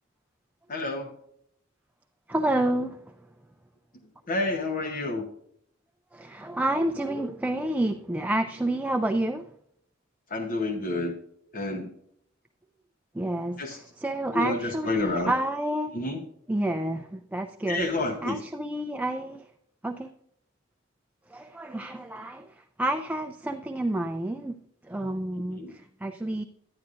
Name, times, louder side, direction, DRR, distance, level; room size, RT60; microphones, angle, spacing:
voice 1, 0.7-1.1 4.3-5.3 10.3-11.2 11.5-11.9 13.6-13.8 14.3-15.3 15.9-16.2 17.7-18.4 25.5-25.7, left 2 dB, 45° left, 4 dB, 0.9 m, -29 dB
voice 2, 2.3-3.0 6.1-9.5 13.1-15.9 16.5-17.8 18.2-19.4 19.8-20.1 21.3-24.6 24.9-26.4, right 1 dB, 10° right, 6 dB, 0.4 m, -29 dB
10.5 x 9.8 x 2.5 m, 0.71 s
head